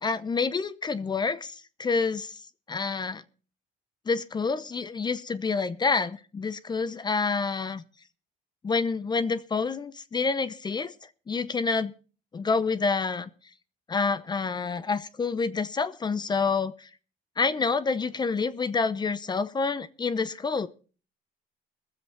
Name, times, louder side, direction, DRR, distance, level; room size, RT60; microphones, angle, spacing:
voice 1, 0.0-3.2 4.1-7.8 8.6-10.9 11.3-11.9 12.3-13.3 13.9-16.9 17.4-20.7, left 4 dB, 25° left, 13 dB, 0.7 m, -28 dB
22.0 x 7.6 x 4.4 m, 0.38 s
cardioid pair, 110°, 17 cm